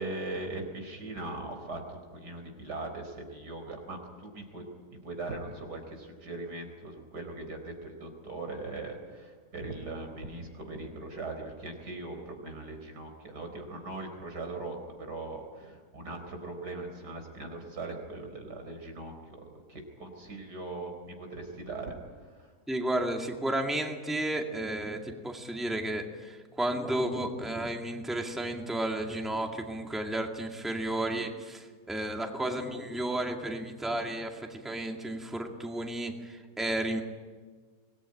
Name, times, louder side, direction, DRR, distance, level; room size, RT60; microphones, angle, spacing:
voice 1, 0.0-4.6 4.9-22.5, right 2 dB, 90° right, 4 dB, 4.9 m, -40 dB
voice 2, 22.7-37.0, right 1 dB, ahead, 2 dB, 2.1 m, -32 dB
24.5 x 19.5 x 9.9 m, 1.5 s
omnidirectional pair, 1.7 m